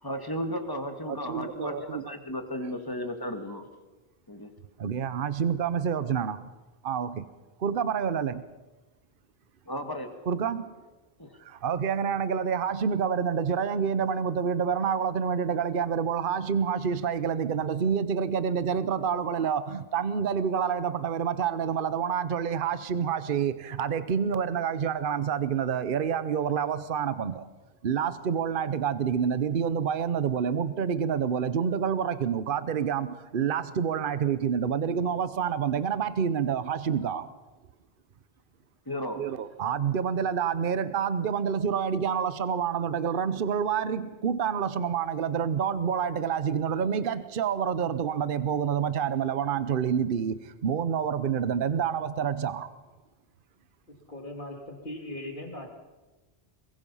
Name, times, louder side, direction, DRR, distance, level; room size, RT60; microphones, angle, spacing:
voice 1, 0.0-3.7 4.3-4.5 9.7-10.1 11.2-11.4 38.9-39.3, equal, 20° left, 5 dB, 2.0 m, -34 dB
voice 2, 1.1-2.1 4.8-6.5 6.8-7.2 7.6-8.4 10.3-10.7 11.4-27.5 27.8-37.3 39.2-52.7, right 7 dB, 60° right, 13 dB, 1.0 m, -28 dB
voice 3, 53.9-55.7, left 1 dB, 50° left, 3 dB, 2.7 m, -39 dB
23.0 x 21.0 x 5.6 m, 1.2 s
omnidirectional pair, 1.1 m